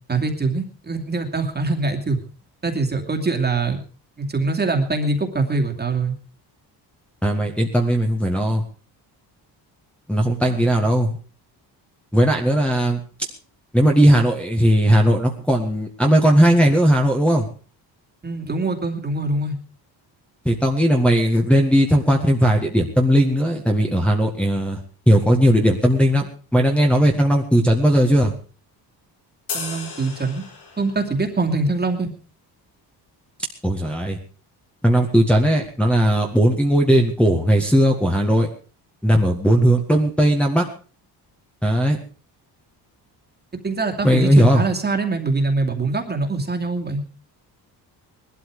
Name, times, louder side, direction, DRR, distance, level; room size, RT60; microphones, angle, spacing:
voice 1, 0.1-2.2 2.6-3.8 4.2-6.1 10.4-10.7 18.2-19.5 29.5-30.4 30.8-32.1 43.6-47.0, right 3 dB, 25° right, 4 dB, 2.5 m, -23 dB
voice 2, 7.2-8.6 10.1-11.2 12.1-13.0 13.7-17.5 20.5-24.8 25.1-28.3 33.6-34.2 34.8-38.5 39.0-40.7 41.6-42.0 44.0-44.6, equal, 5° left, -1 dB, 1.8 m, -17 dB
sound 1, 29.5-31.1, left 5 dB, 80° left, 6.0 m, -33 dB
19.5 x 12.5 x 4.9 m, 0.37 s
cardioid pair, 140°, 41 cm